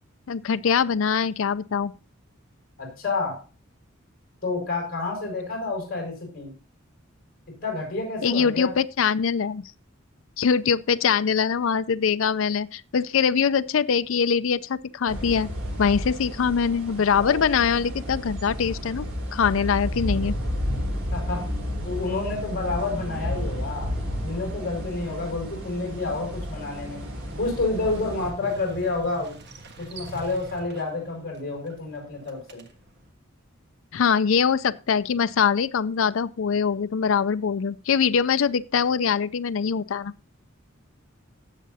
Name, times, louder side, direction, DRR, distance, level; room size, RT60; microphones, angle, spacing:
voice 1, 0.3-1.9 8.2-9.6 10.4-15.5 15.8-20.3 33.9-40.1, left 6 dB, 70° left, 0.5 m, -23 dB
voice 2, 2.8-3.4 4.4-6.5 7.6-8.7 21.1-21.4 21.8-23.9 24.2-27.0 27.4-29.3 29.8-32.6, left 3 dB, 45° left, 6.2 m, -29 dB
sound 1, 15.1-28.3, equal, 80° right, 5.0 m, -32 dB
Motorcycle, 24.7-33.1, right 1 dB, 55° right, 1.5 m, -45 dB
18.0 x 7.5 x 2.7 m
head